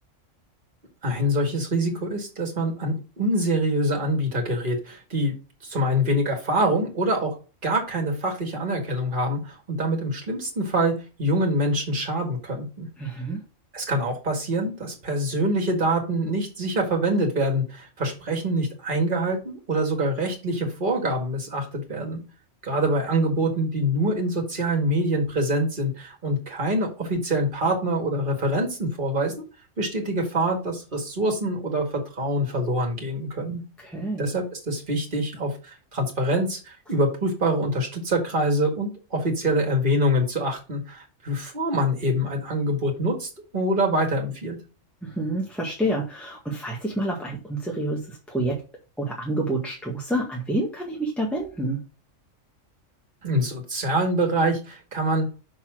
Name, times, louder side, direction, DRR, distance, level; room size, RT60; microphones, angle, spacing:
voice 1, 1.0-5.3 5.6-7.3 7.6-12.9 13.7-22.2 22.6-29.3 29.8-33.6 34.2-44.6 53.2-55.4, right 1 dB, 40° right, 2 dB, 2.0 m, -25 dB
voice 2, 13.0-13.4 33.8-34.3 45.0-48.6 49.0-51.8, right 1 dB, ahead, -3 dB, 1.7 m, -28 dB
6.3 x 4.3 x 6.0 m, 0.34 s
omnidirectional pair, 1.3 m